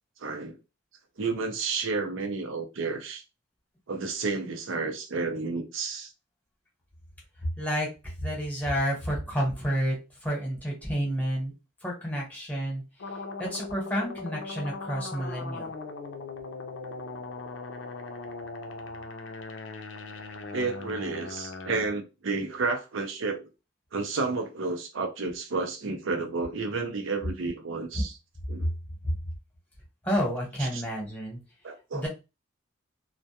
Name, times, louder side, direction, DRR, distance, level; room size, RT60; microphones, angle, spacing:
voice 1, 0.2-0.6 1.2-3.2 3.9-6.1 20.5-23.5 23.9-28.2 28.5-28.7 30.6-30.8 31.6-32.1, right 4 dB, 85° right, 0.5 m, -31 dB
voice 2, 7.6-7.9 8.2-10.0 10.2-11.5 11.8-12.8 13.4-15.7 29.0-29.1 30.0-31.4 31.9-32.1, equal, 10° left, 0.9 m, -30 dB
sound 1, 13.0-21.9, left 3 dB, 75° left, 0.4 m, -39 dB
2.2 x 2.1 x 2.8 m
head